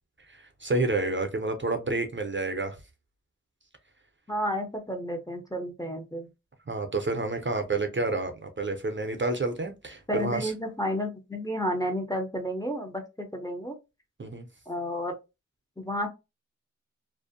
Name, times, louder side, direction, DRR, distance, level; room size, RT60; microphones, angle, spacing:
voice 1, 0.3-2.8 6.7-10.5 14.2-14.5, right 2 dB, 40° right, 0.5 m, -29 dB
voice 2, 4.3-6.3 10.1-13.7 14.7-15.1 15.8-16.1, equal, 10° left, 0.6 m, -31 dB
2.5 x 2.1 x 2.5 m
wide cardioid pair, 40°, 31 cm